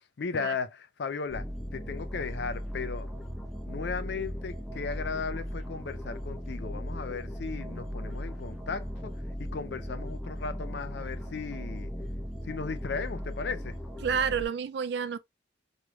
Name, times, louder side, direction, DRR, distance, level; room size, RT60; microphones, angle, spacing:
voice 1, 0.2-3.1 3.7-11.9 12.4-13.8, left 5 dB, 60° left, 0.4 m, -36 dB
sound 1, 1.3-14.4, equal, ahead, 0.5 m, -37 dB
voice 2, 14.0-15.2, right 7 dB, 60° right, 0.4 m, -29 dB
3.1 x 3.1 x 2.3 m
head